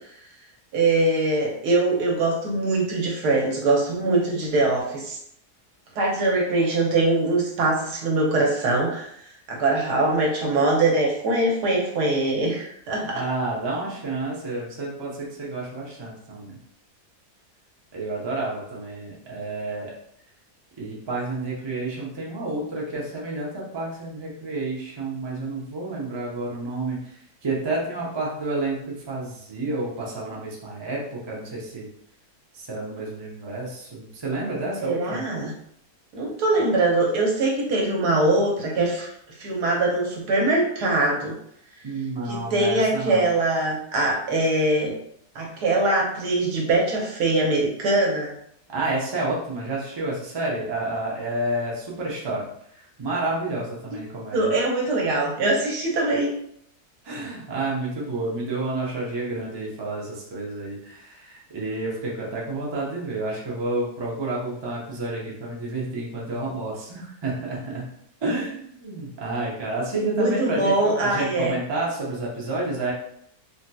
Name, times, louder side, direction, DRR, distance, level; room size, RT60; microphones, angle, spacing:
voice 1, 0.7-5.2 6.0-9.2 9.5-13.2 34.8-35.5 36.1-39.1 39.4-41.3 42.3-44.9 45.3-48.3 54.3-56.3 70.1-71.6, right 2 dB, 80° right, -1 dB, 1.4 m, -22 dB
voice 2, 13.0-16.6 17.9-19.9 20.8-27.0 27.4-31.9 32.5-35.2 41.8-43.3 48.7-52.5 53.0-54.5 57.0-67.9 68.2-72.9, right 2 dB, 40° right, -4 dB, 0.4 m, -30 dB
3.5 x 2.7 x 2.2 m, 0.70 s
omnidirectional pair, 1.7 m